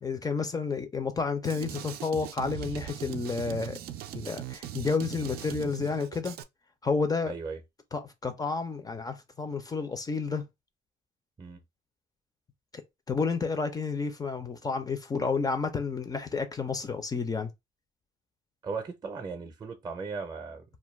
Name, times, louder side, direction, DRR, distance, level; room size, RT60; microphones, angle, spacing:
voice 1, 0.0-3.8 4.1-6.4 6.8-7.3 7.9-10.4 13.1-17.5, left 4 dB, 20° left, 0.4 m, -30 dB
Drum kit, 1.4-6.4, right 11 dB, 65° right, 0.4 m, -40 dB
voice 2, 7.2-7.6 11.4-11.6 18.6-20.6, right 4 dB, 25° right, 0.6 m, -37 dB
2.3 x 2.2 x 3.1 m
cardioid pair, 110°, 17 cm